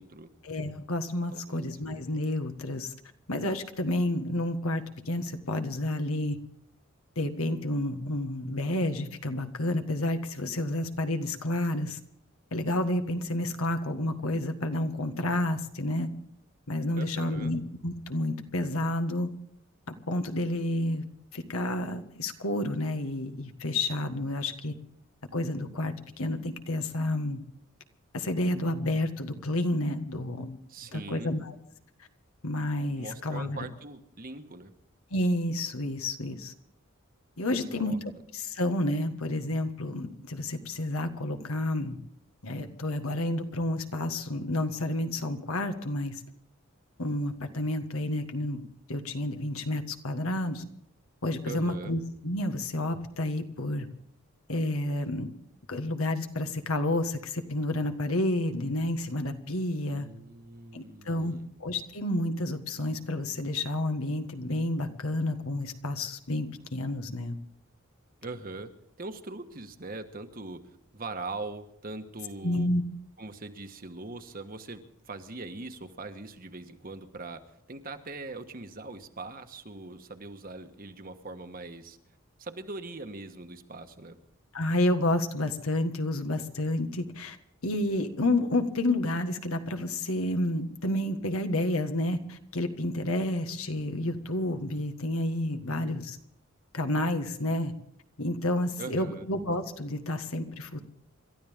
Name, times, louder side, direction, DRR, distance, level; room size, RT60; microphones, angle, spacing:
voice 1, 0.4-2.9 3.3-6.4 7.1-12.0 12.5-16.1 16.7-19.3 20.1-21.0 21.3-24.7 25.3-27.4 28.1-30.6 30.9-31.5 32.4-33.6 35.1-36.5 37.4-42.0 42.4-46.2 47.0-50.6 51.2-53.9 54.5-55.3 55.7-60.1 60.7-67.4 72.4-72.8 84.5-87.4 87.6-96.2 96.7-97.7 98.2-100.8, left 1 dB, 85° left, 7 dB, 1.6 m, -30 dB
voice 2, 1.3-1.6 16.9-17.5 30.7-31.4 33.0-34.7 37.6-38.0 51.4-52.0 60.0-61.5 68.2-68.7 69.0-70.6 70.9-72.7 73.2-77.4 77.7-82.0 82.4-84.2 95.6-95.9 98.8-99.3, right 3 dB, 40° right, 7 dB, 1.2 m, -41 dB
28.5 x 13.0 x 3.6 m, 0.71 s
head